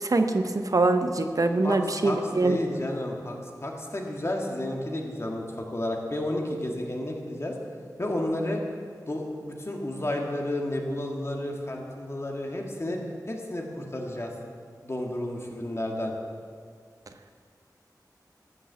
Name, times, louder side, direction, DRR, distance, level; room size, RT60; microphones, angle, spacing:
voice 1, 0.0-2.6, right 2 dB, 55° right, 7 dB, 0.8 m, -24 dB
voice 2, 1.6-7.5 8.0-8.6 9.1-13.0 13.3-14.3 14.8-16.1, left 1 dB, 40° left, 0 dB, 1.9 m, -31 dB
13.5 x 6.8 x 7.5 m, 2.1 s
wide cardioid pair, 65°, 7 cm